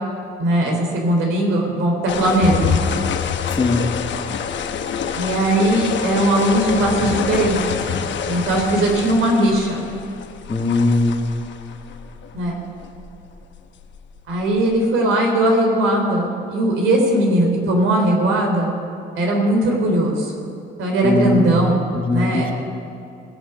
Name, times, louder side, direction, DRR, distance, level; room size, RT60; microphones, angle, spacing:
voice 1, 0.4-2.8 5.2-7.6 8.3-9.8 12.3-12.6 14.3-18.8 19.1-20.3 20.8-21.8 22.1-22.5, right 1 dB, 85° right, 1 dB, 3.4 m, -19 dB
sound 1, 2.1-14.6, left 7 dB, 65° left, 1.0 m, -27 dB
voice 2, 3.5-3.8 10.5-11.3 21.0-21.6 21.9-22.5, left 2 dB, 25° left, 3 dB, 1.6 m, -19 dB
21.5 x 7.1 x 6.8 m, 2.6 s
cardioid pair, 90°, 20 cm